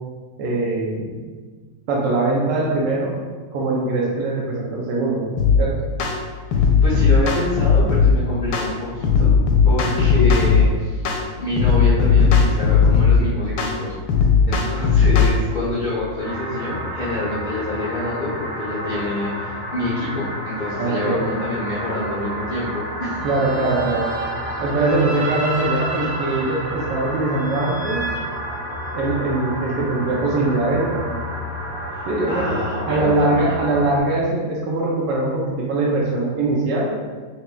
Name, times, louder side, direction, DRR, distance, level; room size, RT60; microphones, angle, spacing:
voice 1, 0.4-1.2 1.9-3.1 3.5-5.3 5.6-5.7 20.8-21.3 23.2-24.0 24.6-28.0 28.9-31.1 32.1-32.6 32.9-36.9, right 2 dB, 75° right, -4 dB, 1.2 m, -22 dB
sound 1, 5.4-5.6 6.0-6.2 6.5-8.1 8.5-8.7 9.0-10.6 11.0-11.2 11.6-13.2 13.6-13.7 14.1-15.3, left 6 dB, 90° left, 1.3 m, -16 dB
voice 2, 6.4-9.3 9.6-11.0 11.4-13.9 14.5-23.2 31.9-33.6, left 2 dB, 55° left, -8 dB, 0.5 m, -27 dB
sound 2, 16.2-34.0, equal, 40° right, 1.2 m, -30 dB
sound 3, 23.1-29.2, right 3 dB, 60° right, 1.1 m, -32 dB
5.6 x 3.0 x 2.3 m, 1.5 s
omnidirectional pair, 2.0 m